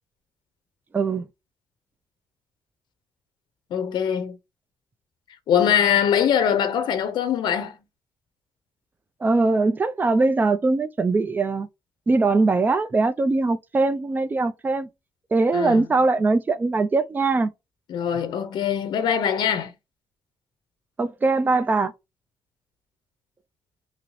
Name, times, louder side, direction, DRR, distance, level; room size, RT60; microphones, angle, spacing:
voice 1, 0.9-1.2 9.2-11.7 12.1-14.9 15.3-17.5 21.0-21.9, right 3 dB, 25° right, 0.4 m, -21 dB
voice 2, 3.7-4.4 5.5-7.8 15.5-15.9 17.9-19.7, left 8 dB, 75° left, 0.5 m, -22 dB
2.9 x 2.6 x 3.0 m
cardioid pair, 115°, 8 cm